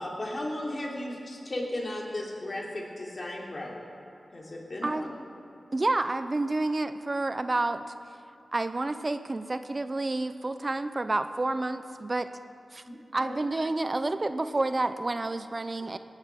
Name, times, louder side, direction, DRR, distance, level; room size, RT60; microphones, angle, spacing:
voice 1, 0.0-3.8 4.3-5.1 12.9-13.3, left 1 dB, 50° left, -2 dB, 3.2 m, -35 dB
voice 2, 5.7-7.8 8.5-12.3 12.7-12.8 13.1-16.0, right 2 dB, 40° right, 11 dB, 0.7 m, -29 dB
17.5 x 8.3 x 7.6 m, 2.8 s
cardioid pair, 45°, 0 cm